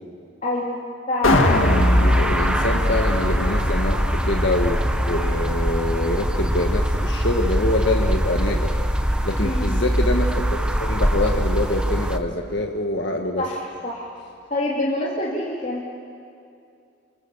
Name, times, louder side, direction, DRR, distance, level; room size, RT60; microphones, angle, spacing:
voice 1, 0.4-1.7 9.4-9.7 13.4-14.1 14.5-15.9, left 1 dB, 40° left, -5 dB, 2.9 m, -27 dB
sound 1, 1.2-7.5 7.8-7.9, left 1 dB, 90° left, 2.0 m, -23 dB
sound 2, 1.2-12.2, equal, 5° right, 1.0 m, -23 dB
voice 2, 2.0-8.7 9.2-13.4, left 1 dB, 60° left, 2 dB, 1.6 m, -25 dB
29.5 x 25.0 x 7.2 m, 2.5 s
head